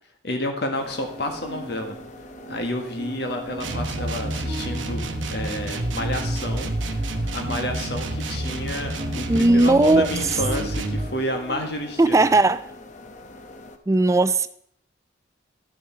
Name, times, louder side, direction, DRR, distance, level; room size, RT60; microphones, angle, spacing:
voice 1, 0.2-2.0 2.5-6.7 7.3-12.4, left 1 dB, 60° left, 1.5 m, -30 dB
sound 1, 0.7-13.8, left 2 dB, 40° left, 0.8 m, -44 dB
sound 2, 0.9-11.8, right 1 dB, 35° right, 1.4 m, -40 dB
sound 3, 3.6-11.1, right 1 dB, 85° right, 0.9 m, -29 dB
voice 2, 9.3-10.1 12.0-12.7 13.9-14.5, right 2 dB, 15° right, 0.3 m, -17 dB
12.0 x 6.6 x 4.4 m
head